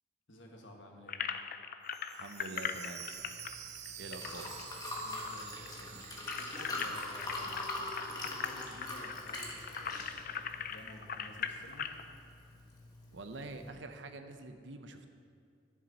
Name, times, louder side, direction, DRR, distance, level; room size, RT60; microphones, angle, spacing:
voice 1, 0.3-1.3 5.0-6.0 6.3-7.7 8.0-11.9, left 1 dB, 85° left, 1 dB, 1.6 m, -54 dB
sound 1, 1.1-5.0 5.3-5.4 5.7-12.0, left 7 dB, 50° left, 0.5 m, -40 dB
Chime, 1.9-7.8 8.1-8.2 8.8-8.9, right 9 dB, 35° right, 0.5 m, -49 dB
voice 2, 2.1-3.1 4.0-4.6 13.1-15.1, right 2 dB, 75° right, 7 dB, 0.8 m, -46 dB
Liquid, 3.1-13.7, left 2 dB, 20° left, 1.5 m, -43 dB
11.0 x 10.0 x 4.2 m, 2.4 s
head